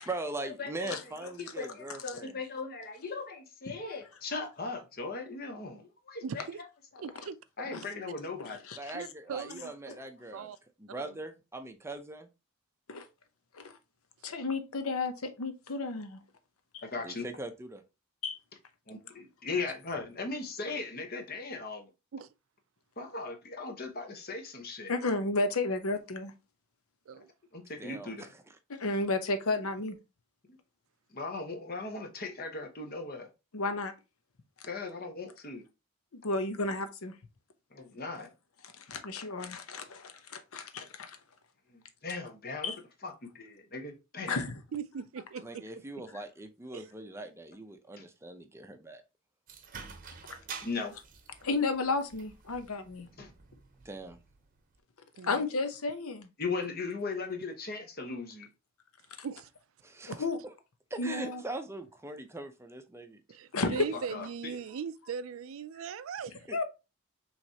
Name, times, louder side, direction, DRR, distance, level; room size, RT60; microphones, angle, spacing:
voice 1, 0.1-2.3 8.8-10.5 10.8-12.3 17.0-17.8 27.8-28.3 45.4-49.0 53.8-54.2 59.8-60.1 60.9-63.2 66.5-66.6, right 2 dB, 10° right, 0.5 m, -41 dB
voice 2, 0.6-1.0 1.4-6.4 6.9-7.0 7.6-8.6 16.8-17.3 18.9-21.9 23.0-24.9 27.5-28.3 30.5-30.6 31.1-33.3 34.7-35.6 37.7-38.3 41.7-42.7 43.0-44.4 50.6-51.0 53.2-53.3 56.4-58.5 63.9-64.6, left 4 dB, 45° left, 1.0 m, -38 dB
voice 3, 6.2-6.6 7.0-7.4 8.9-9.7 10.3-10.6 10.9-11.2 14.2-14.3 22.1-22.3 27.1-27.3 44.7-46.0 46.7-46.9 55.2-55.4 59.2-59.5 60.0-60.1 63.3-66.5, right 6 dB, 70° right, 0.4 m, -40 dB
voice 4, 14.2-16.2 16.7-16.8 18.2-18.4 24.9-26.3 28.7-30.0 33.5-33.9 36.1-37.1 38.8-41.2 42.6-42.8 44.3-44.6 51.4-53.1 55.2-56.3 60.2-60.4 61.0-61.4 63.5-63.9 66.5-66.6, left 3 dB, 90° left, 0.8 m, -32 dB
sound 1, 49.5-54.8, right 5 dB, 40° right, 0.8 m, -49 dB
5.9 x 3.2 x 2.8 m
head